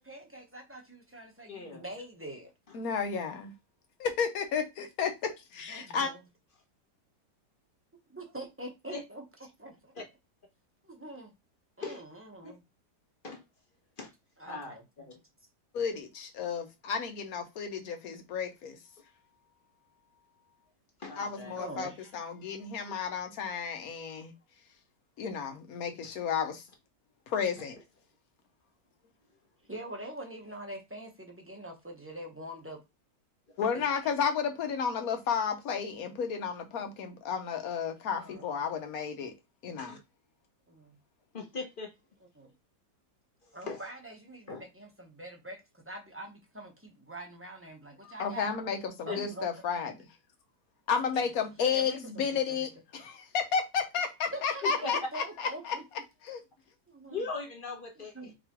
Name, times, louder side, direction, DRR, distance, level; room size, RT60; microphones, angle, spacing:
voice 1, 0.0-2.5 5.7-6.2 8.1-9.2 9.6-9.9 10.8-11.3 11.8-12.6 14.4-15.1 21.6-22.1 29.7-32.8 33.7-33.9 38.2-38.6 40.7-41.0 42.3-42.5 43.5-48.6 49.1-49.9 51.1-51.3 51.6-52.7 54.3-55.8 56.9-57.3 58.0-58.3, right 1 dB, 10° right, 0.7 m, -44 dB
voice 2, 1.5-1.8 8.9-9.0 9.9-10.0 11.8-12.0 12.4-12.6 13.2-13.4 14.0-14.1 14.5-14.7 15.1-15.2 21.0-21.7 26.0-26.1 33.5-33.6 39.8-40.0 41.3-41.9 43.7-43.8 44.5-44.6 49.1-49.2 54.6-54.9 57.1-58.3, left 4 dB, 35° left, 1.0 m, -39 dB
voice 3, 2.7-3.5 4.0-6.1 15.7-18.8 21.2-24.3 25.2-26.6 27.3-27.8 33.6-39.3 39.6-40.0 48.0-50.0 50.9-55.8 56.2-56.4, left 6 dB, 65° left, 1.3 m, -32 dB
4.9 x 3.4 x 3.0 m
omnidirectional pair, 1.8 m